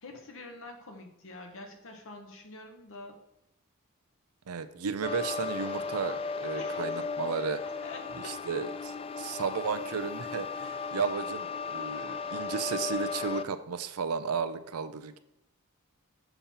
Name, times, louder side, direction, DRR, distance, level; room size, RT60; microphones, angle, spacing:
voice 1, 0.0-3.1 6.6-6.9 7.8-8.3, left 2 dB, 65° left, 3 dB, 1.3 m, -45 dB
voice 2, 4.5-7.6 8.2-15.2, right 5 dB, 80° right, 11 dB, 0.6 m, -34 dB
sound 1, 5.0-13.4, left 5 dB, 25° left, 0.4 m, -36 dB
6.9 x 4.4 x 5.6 m, 0.80 s
head